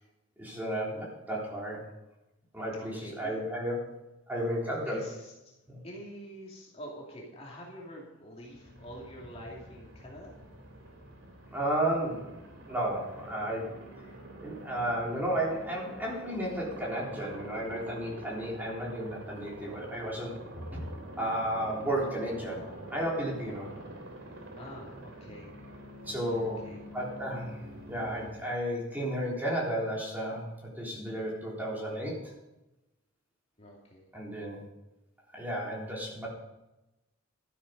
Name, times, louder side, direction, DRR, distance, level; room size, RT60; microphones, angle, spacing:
voice 1, 0.4-1.8 2.5-3.9 4.3-5.1 5.7-5.8 11.5-12.3 12.7-13.8 14.4-20.8 21.2-22.6 22.9-23.7 26.1-26.6 26.9-32.3 34.1-34.6 35.3-36.3, right 1 dB, 10° right, -4 dB, 3.6 m, -33 dB
voice 2, 2.7-3.4 4.9-5.5 5.8-10.3 24.6-26.8 33.6-34.1, equal, 30° left, -3 dB, 2.7 m, -47 dB
Aircraft, 8.4-28.3, right 1 dB, 80° right, 3.1 m, -46 dB
13.0 x 9.8 x 5.3 m, 0.96 s
head